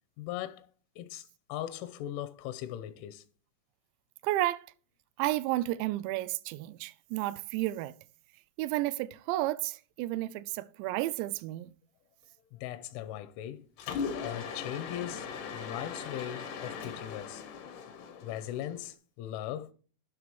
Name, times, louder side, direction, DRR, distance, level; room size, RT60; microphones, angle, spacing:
voice 1, 0.2-0.7 1.0-3.2 12.5-13.7 14.2-15.3 15.5-17.4 18.2-19.7, left 12 dB, 80° left, 3.0 m, -39 dB
voice 2, 4.2-4.6 5.2-7.9 8.6-11.7, right 16 dB, 85° right, 2.6 m, -32 dB
Mechanisms, 13.8-18.9, left 6 dB, 65° left, 2.8 m, -39 dB
12.0 x 7.9 x 3.1 m
omnidirectional pair, 5.8 m